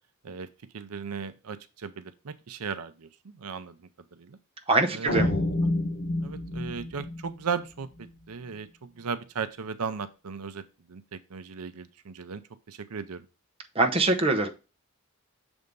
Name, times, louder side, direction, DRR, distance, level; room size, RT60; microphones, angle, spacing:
voice 1, 0.7-3.8 4.1-4.4 4.9-5.3 6.2-10.6 10.9-12.4 12.7-13.2, right 5 dB, 85° right, 11 dB, 0.6 m, -36 dB
voice 2, 4.7-5.3 13.7-14.5, right 2 dB, 25° right, 3 dB, 0.8 m, -23 dB
sound 1, 5.1-8.2, left 1 dB, 45° left, 0.8 m, -29 dB
6.5 x 3.5 x 5.2 m, 0.31 s
head